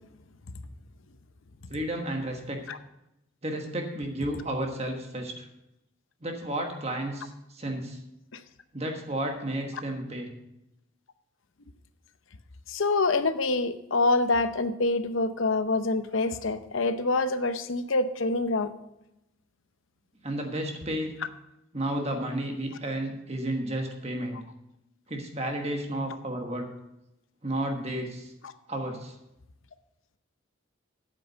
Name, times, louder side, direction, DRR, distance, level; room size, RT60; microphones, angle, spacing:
voice 1, 1.7-2.6 3.4-5.5 6.2-8.0 8.7-10.3 20.2-21.2 21.7-24.4 25.1-26.7 27.4-28.3 28.7-29.2, right 1 dB, 30° right, 3 dB, 1.3 m, -32 dB
voice 2, 12.7-18.7, left 3 dB, 70° left, 11 dB, 0.7 m, -26 dB
8.6 x 8.3 x 5.5 m, 0.87 s
head